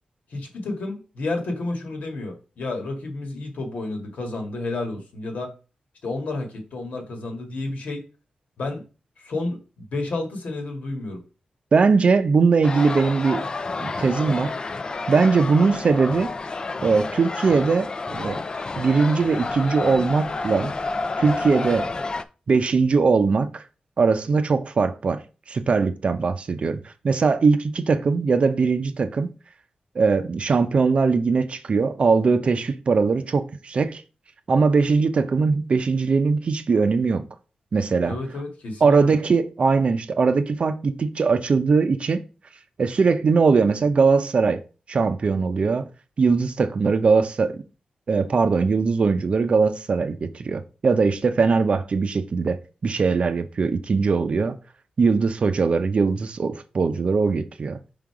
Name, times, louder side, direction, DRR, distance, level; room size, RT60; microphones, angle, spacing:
voice 1, 0.3-5.5 6.0-8.0 8.6-8.9 9.2-11.2 38.0-39.1, left 2 dB, 75° left, 1.7 m, -31 dB
voice 2, 11.7-13.5 13.8-14.5 15.1-16.3 16.8-18.4 18.8-20.7 21.2-21.9 22.5-23.6 24.0-25.2 25.5-29.3 29.9-34.0 34.5-37.3 37.7-38.2 38.8-42.2 42.8-44.6 44.9-45.9 46.2-47.6 48.1-54.6 55.0-57.8, right 4 dB, 50° right, 0.6 m, -20 dB
sound 1, 12.6-22.2, left 3 dB, 35° left, 0.4 m, -30 dB
5.2 x 3.8 x 4.8 m
wide cardioid pair, 120°, 3 cm